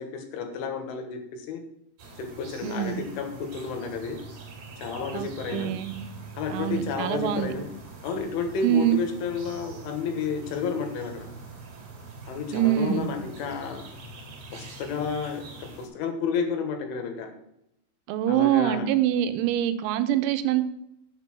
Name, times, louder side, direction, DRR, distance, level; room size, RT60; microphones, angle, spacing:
voice 1, 0.0-1.6 2.2-4.2 4.8-5.7 6.4-7.7 8.0-11.3 12.3-13.8 14.5-17.3 18.3-18.9, left 5 dB, 75° left, 5 dB, 3.5 m, -31 dB
sound 1, 2.0-15.9, right 4 dB, 50° right, 3.1 m, -43 dB
voice 2, 2.6-3.0 5.1-5.9 6.5-7.5 8.6-9.0 12.5-13.1 18.1-20.6, right 11 dB, 85° right, 10 dB, 3.5 m, -24 dB
7.8 x 6.8 x 6.0 m, 0.81 s
omnidirectional pair, 5.9 m